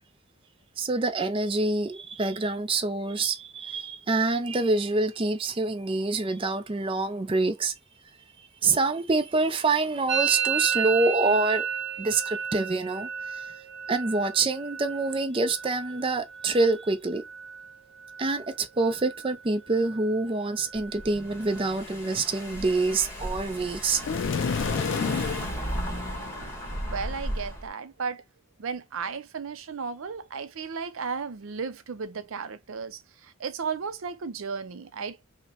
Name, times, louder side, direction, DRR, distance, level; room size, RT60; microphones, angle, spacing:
voice 1, 0.8-7.7 8.4-11.7 12.0-13.5 13.9-17.2 18.2-24.0, right 3 dB, 25° right, 0.5 m, -26 dB
Musical instrument, 10.1-17.7 18.0-18.6 18.8-19.4 19.7-21.7, right 8 dB, 55° right, 0.8 m, -33 dB
Car / Engine, 20.8-27.7, equal, 10° left, 1.2 m, -35 dB
sound 1, 24.0-25.6, left 6 dB, 60° left, 0.3 m, -28 dB
voice 2, 26.9-28.2 28.6-35.2, right 5 dB, 75° right, 0.5 m, -34 dB
5.7 x 2.1 x 2.9 m
head